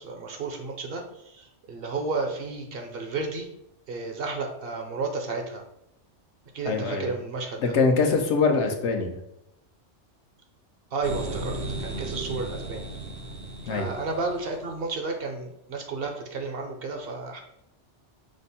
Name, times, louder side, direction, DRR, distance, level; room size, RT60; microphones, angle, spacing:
voice 1, 0.0-3.5 3.9-5.6 6.5-7.7 10.9-12.8 13.7-17.4, right 3 dB, 60° right, 3 dB, 0.8 m, -32 dB
voice 2, 6.6-7.1 7.6-9.2 13.7-13.9, left 4 dB, 75° left, 4 dB, 0.9 m, -23 dB
sound 1, 11.0-14.9, right 2 dB, 80° right, 1.0 m, -35 dB
5.1 x 2.0 x 4.1 m, 0.80 s
omnidirectional pair, 1.2 m